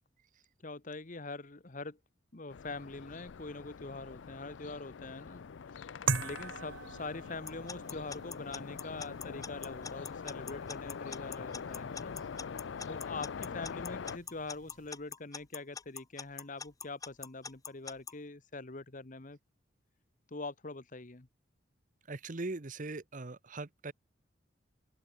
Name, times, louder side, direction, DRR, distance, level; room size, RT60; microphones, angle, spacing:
voice 1, 0.6-2.0 2.3-5.4 6.2-12.2 12.9-19.4 20.3-21.3, left 3 dB, 40° left, 1.2 m, -44 dB
sound 1, 2.5-14.2, left 6 dB, 70° left, 0.5 m, -44 dB
sound 2, 6.1-14.9, right 5 dB, 80° right, 1.9 m, -43 dB
Alarm / Clock, 7.5-18.1, left 6 dB, 20° left, 0.5 m, -43 dB
voice 2, 22.1-23.9, right 2 dB, 40° right, 0.9 m, -40 dB
head